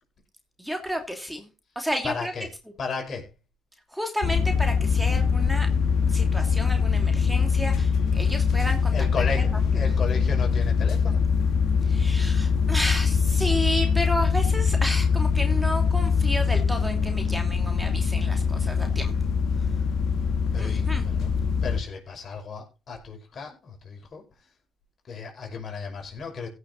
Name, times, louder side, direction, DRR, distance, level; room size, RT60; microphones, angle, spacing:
voice 1, 0.6-1.5 1.7-2.3 3.9-5.7 6.1-8.9 11.8-19.1 20.6-21.0, equal, 5° right, 2.9 m, -31 dB
voice 2, 2.0-2.5 2.8-3.3 8.9-11.2 20.5-21.3 21.6-24.2 25.1-26.5, left 5 dB, 55° left, 5.9 m, -34 dB
sound 1, 4.2-21.8, left 5 dB, 70° left, 1.5 m, -23 dB
16.5 x 6.5 x 4.1 m
supercardioid pair, 55°, 0 cm